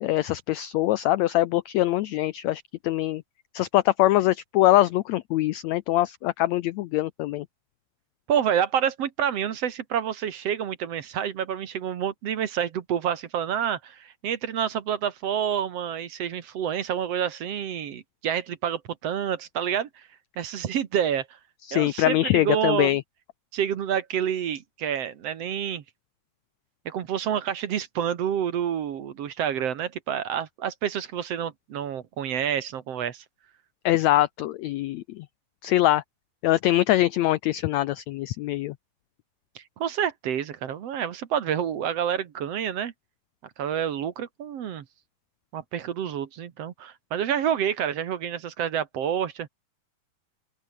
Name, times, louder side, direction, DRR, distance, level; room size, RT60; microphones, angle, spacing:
voice 1, 0.0-3.2 3.5-7.5 21.7-23.0 33.8-35.2 35.6-36.0 36.4-38.7, left 15 dB, 85° left, 1.5 m, -23 dB
voice 2, 8.3-19.9 20.4-21.3 21.7-23.0 23.5-25.8 26.9-33.2 39.6-42.9 43.6-44.8 45.5-49.5, right 9 dB, 55° right, 2.2 m, -28 dB
open air
omnidirectional pair, 3.9 m